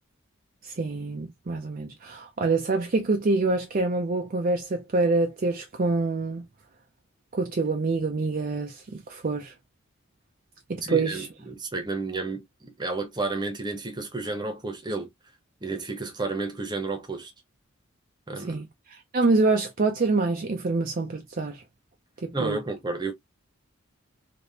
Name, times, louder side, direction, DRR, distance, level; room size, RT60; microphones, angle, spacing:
voice 1, 0.6-6.4 7.3-9.5 10.7-11.3 18.4-21.6 22.2-22.6, right 3 dB, 40° right, 0.5 m, -26 dB
voice 2, 10.8-15.1 15.6-17.3 18.3-18.6 22.3-23.1, right 3 dB, 20° right, 0.9 m, -31 dB
3.4 x 2.9 x 2.7 m
head